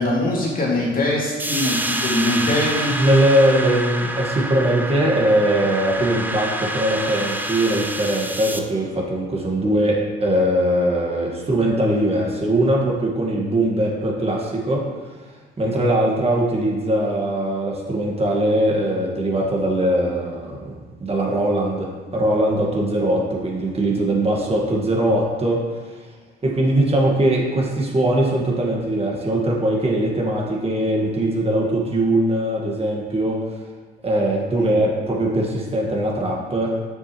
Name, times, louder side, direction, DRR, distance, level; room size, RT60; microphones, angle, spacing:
voice 1, 0.0-2.9 34.6-34.7, left 1 dB, 45° left, -3 dB, 2.2 m, -22 dB
sound 1, 1.4-8.6, right 1 dB, 10° right, 0.6 m, -27 dB
voice 2, 2.9-15.2 15.6-20.7 21.0-26.0 26.4-33.4 34.0-36.7, right 1 dB, 30° right, -2 dB, 1.6 m, -21 dB
7.1 x 6.8 x 3.1 m, 1.4 s
cardioid pair, 90°, 20 cm